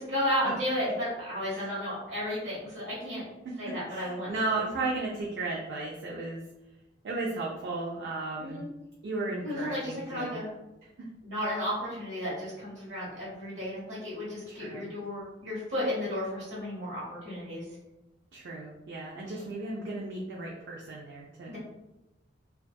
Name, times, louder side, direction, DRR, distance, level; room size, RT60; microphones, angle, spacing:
voice 1, 0.1-3.2 3.6-4.3 8.4-8.7 9.4-10.5 11.2-17.6 19.3-19.4 21.5-21.6, equal, 90° right, -8 dB, 1.0 m, -33 dB
voice 2, 3.4-6.4 7.0-8.6 9.0-10.4 11.0-11.1 14.5-14.9 18.3-21.6, right 3 dB, 70° right, -3 dB, 0.4 m, -35 dB
2.6 x 2.3 x 2.2 m, 0.97 s
head